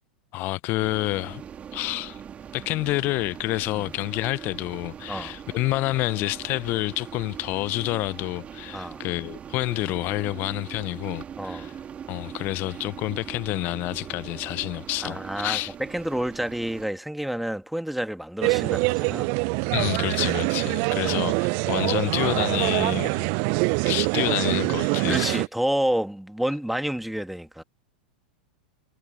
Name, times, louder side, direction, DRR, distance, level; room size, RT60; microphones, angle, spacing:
voice 1, 0.3-1.4 1.7-2.2 2.5-11.7 12.1-15.7 19.7-23.3 23.8-25.4, left 20 dB, 45° left, 0.7 m, -28 dB
sound 1, 0.8-16.9, right 8 dB, 25° right, 2.2 m, -41 dB
voice 2, 8.7-9.0 11.4-11.7 15.0-19.4 21.0-21.1 25.1-27.6, right 1 dB, ahead, 1.7 m, -29 dB
sound 2, 18.4-25.5, right 33 dB, 50° right, 0.6 m, -24 dB
figure-of-eight pair, 90°, 5 cm